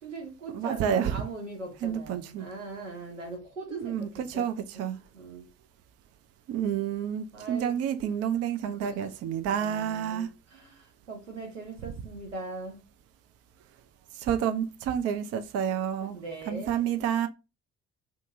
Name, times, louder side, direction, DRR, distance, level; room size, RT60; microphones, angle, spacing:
voice 1, 0.0-4.5 4.7-4.9 5.1-5.5 7.3-7.8 8.2-8.3 8.7-9.1 9.5-12.8 16.0-16.9, right 3 dB, 85° right, 0.7 m, -41 dB
voice 2, 0.5-1.1 1.8-2.4 3.7-5.0 6.5-10.3 14.2-16.2 16.5-17.3, right 9 dB, 45° right, 0.4 m, -29 dB
2.6 x 2.5 x 2.6 m
figure-of-eight pair, 45°, 36 cm